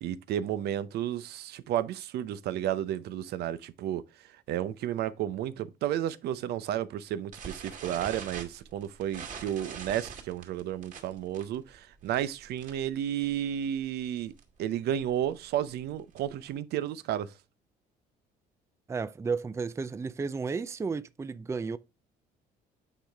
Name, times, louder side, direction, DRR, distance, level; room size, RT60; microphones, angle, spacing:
voice 1, 0.0-4.0 4.5-14.3 14.6-17.3, right 11 dB, 75° right, 0.7 m, -32 dB
sound 1, 7.3-12.9 13.2-13.5 13.8-13.9 14.2-14.4 14.9-16.5, right 6 dB, 50° right, 2.4 m, -43 dB
voice 2, 18.9-21.8, right 4 dB, 15° right, 0.4 m, -33 dB
8.9 x 5.0 x 3.4 m
cardioid pair, 110°, 17 cm